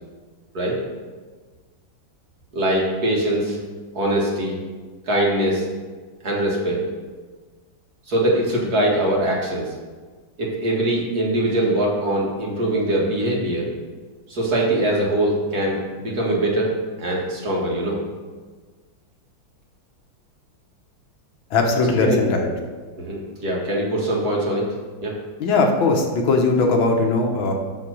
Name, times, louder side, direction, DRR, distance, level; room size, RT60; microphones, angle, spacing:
voice 1, 2.5-3.6 3.9-4.6 5.1-5.6 6.2-6.8 8.1-9.6 10.4-13.7 14.3-16.7 17.0-18.0 22.0-22.2 23.0-24.6 25.0-25.1, right 1 dB, 50° right, -3 dB, 2.2 m, -22 dB
voice 2, 21.5-22.5 25.4-27.5, left 3 dB, 80° left, 2 dB, 1.9 m, -19 dB
7.0 x 5.8 x 6.3 m, 1.4 s
omnidirectional pair, 2.1 m